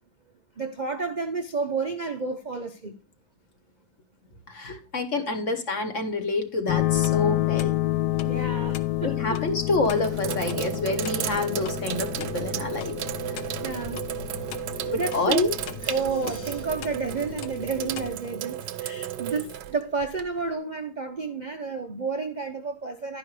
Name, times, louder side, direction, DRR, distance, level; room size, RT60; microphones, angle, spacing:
voice 1, 0.6-2.9 8.2-9.2 12.3-12.9 13.6-14.0 14.9-15.4 15.8-23.2, right 4 dB, 50° right, 0.5 m, -31 dB
voice 2, 4.5-7.8 9.0-13.0 13.3-13.4 14.8-15.5 16.2-16.3, left 3 dB, 45° left, 1.4 m, -28 dB
sound 1, 6.7-18.1, left 15 dB, 70° left, 1.2 m, -30 dB
Sink (filling or washing), 8.5-9.0 9.6-20.5, right 12 dB, 70° right, 1.3 m, -34 dB
11.0 x 9.7 x 3.3 m
omnidirectional pair, 2.1 m